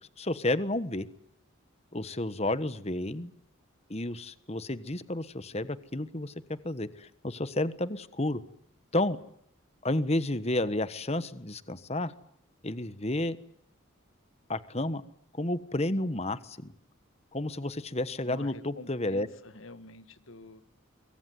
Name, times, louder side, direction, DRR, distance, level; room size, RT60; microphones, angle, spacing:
voice 1, 0.2-1.1 1.9-3.3 3.9-8.4 8.9-9.2 9.8-12.1 12.6-13.4 14.5-15.0 15.3-16.7 17.3-19.3, left 1 dB, 30° left, 14 dB, 1.3 m, -31 dB
voice 2, 18.2-20.6, left 2 dB, 75° left, 12 dB, 1.8 m, -48 dB
24.5 x 23.5 x 9.6 m, 0.70 s
head